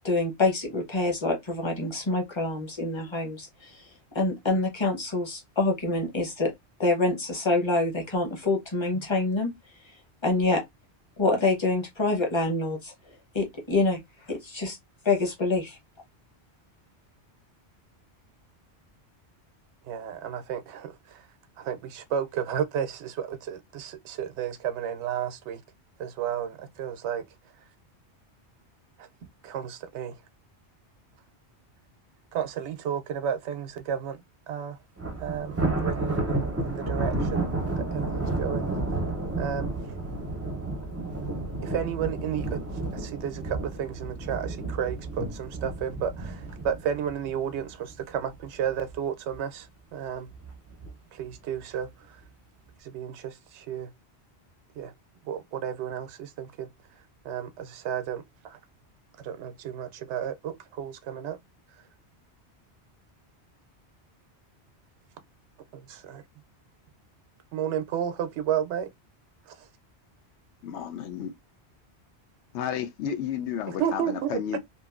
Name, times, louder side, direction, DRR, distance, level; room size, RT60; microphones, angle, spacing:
voice 1, 0.0-3.7 4.1-6.5 6.8-9.5 10.2-10.6 11.2-12.9 13.3-14.0 14.3-14.8 15.0-15.8, left 2 dB, 25° left, 0.8 m, -26 dB
voice 2, 19.8-21.3 21.6-25.6 26.0-27.2 29.0-29.1 29.4-30.1 32.3-34.2 34.5-34.8 35.2-37.5 37.8-38.7 39.4-39.7 41.6-42.6 42.9-50.3 51.1-52.2 52.8-53.9 54.8-54.9 55.3-56.7 57.2-58.6 59.2-61.4 65.7-66.2 67.5-68.9 69.5-69.7 73.8-74.4, right 9 dB, 80° right, 0.9 m, -32 dB
Thunder, 35.0-48.3 48.6-48.9 49.3-49.4 50.3-50.9, right 2 dB, 20° right, 0.5 m, -31 dB
voice 3, 70.6-71.3 72.5-74.6, left 8 dB, 80° left, 0.9 m, -32 dB
2.8 x 2.5 x 2.4 m
omnidirectional pair, 1.2 m